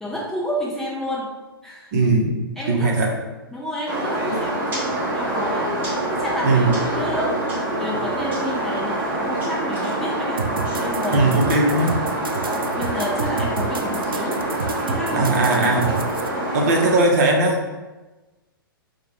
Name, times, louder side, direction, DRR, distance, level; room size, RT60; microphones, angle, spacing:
voice 1, 0.0-1.3 1.6-1.9 2.6-2.9 3.5-5.7 6.1-7.3 7.7-10.4 10.8-11.3 12.7-14.4 14.9-15.9, equal, 5° left, -5 dB, 0.4 m, -30 dB
voice 2, 1.9-3.1 6.4-6.8 11.1-12.0 15.1-16.0 16.5-17.6, right 2 dB, 45° right, 0 dB, 0.7 m, -19 dB
sound 1, 3.9-17.0, right 1 dB, 15° right, 0.9 m, -25 dB
sound 2, 10.4-16.3, right 4 dB, 70° right, 0.4 m, -29 dB
4.5 x 2.2 x 3.1 m, 1.2 s
figure-of-eight pair, 110°, 12 cm